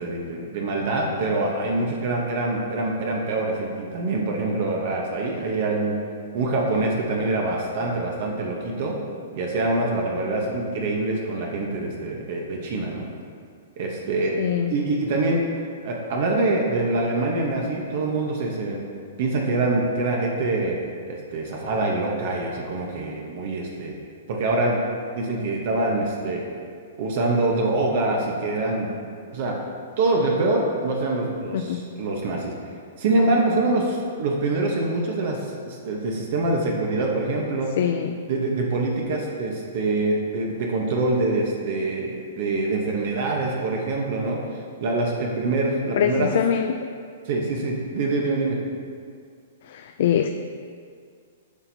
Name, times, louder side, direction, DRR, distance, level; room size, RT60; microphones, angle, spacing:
voice 1, 0.0-5.9 6.3-9.0 9.3-13.1 13.8-14.4 14.7-15.4 15.8-18.8 19.2-20.8 21.1-23.9 24.3-24.8 25.1-26.4 27.0-28.9 29.3-29.6 30.0-32.5 33.0-37.7 38.3-44.4 44.8-46.3 47.2-48.6, right 2 dB, 55° right, -1 dB, 1.0 m, -25 dB
voice 2, 14.4-14.7 31.5-31.8 37.8-38.2 46.0-46.7 49.7-50.3, left 9 dB, 60° left, 6 dB, 0.3 m, -23 dB
11.5 x 4.4 x 2.7 m, 2.2 s
hypercardioid pair, 145°, 0 cm